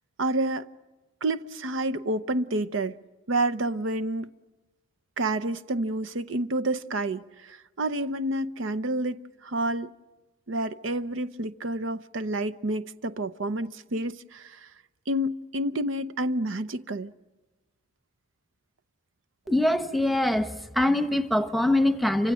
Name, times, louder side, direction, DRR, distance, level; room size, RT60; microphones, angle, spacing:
voice 1, 0.2-0.7 1.2-3.0 3.3-4.3 5.2-9.2 9.4-9.9 10.5-14.7 15.1-17.1, right 1 dB, 70° right, 0.7 m, -29 dB
voice 2, 19.5-22.3, left 1 dB, ahead, 1.0 m, -23 dB
30.0 x 25.5 x 6.3 m
head